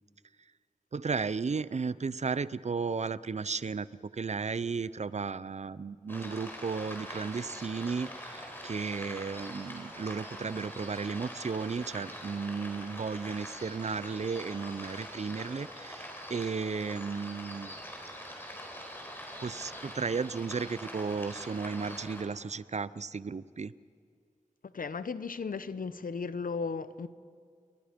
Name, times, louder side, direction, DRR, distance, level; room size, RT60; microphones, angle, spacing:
voice 1, 0.9-17.7 18.4-18.5 19.4-23.7, right 5 dB, 55° right, 0.5 m, -34 dB
sound 1, 6.1-22.2, equal, 15° left, 4.1 m, -44 dB
voice 2, 24.6-27.1, left 5 dB, 85° left, 0.8 m, -35 dB
30.0 x 22.5 x 5.2 m
wide cardioid pair, 75°, 14 cm